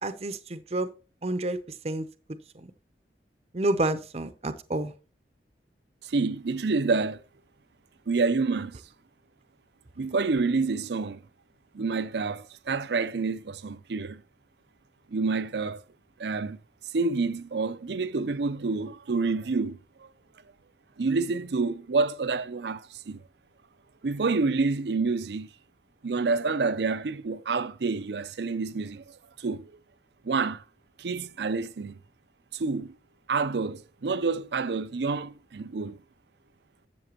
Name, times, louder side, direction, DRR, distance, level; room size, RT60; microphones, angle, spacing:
voice 1, 0.0-0.9 1.2-1.6 1.8-2.1 3.5-4.9, right 2 dB, 35° right, 0.6 m, -29 dB
voice 2, 6.0-7.2 8.1-8.8 10.0-11.2 11.7-14.2 15.1-15.8 16.2-16.6 16.9-20.1 21.0-23.2 24.0-25.5 26.0-29.0 29.4-29.7 30.2-30.6 31.0-32.0 32.5-33.0 33.3-36.0, right 4 dB, 75° right, 0.5 m, -28 dB
12.5 x 7.5 x 2.9 m
head